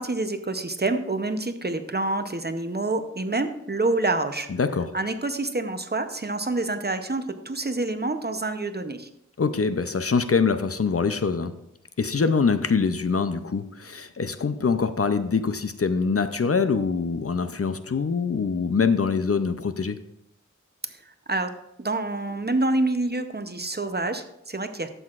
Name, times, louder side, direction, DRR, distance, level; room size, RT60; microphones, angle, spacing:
voice 1, 0.0-4.5 4.9-9.1 12.2-12.6 20.9-21.5 21.8-24.9, right 2 dB, 35° right, 8 dB, 0.7 m, -27 dB
voice 2, 4.6-4.9 9.4-11.5 12.0-20.0, left 5 dB, 50° left, 11 dB, 0.5 m, -24 dB
11.5 x 7.8 x 2.4 m, 0.81 s
wide cardioid pair, 50°, 30 cm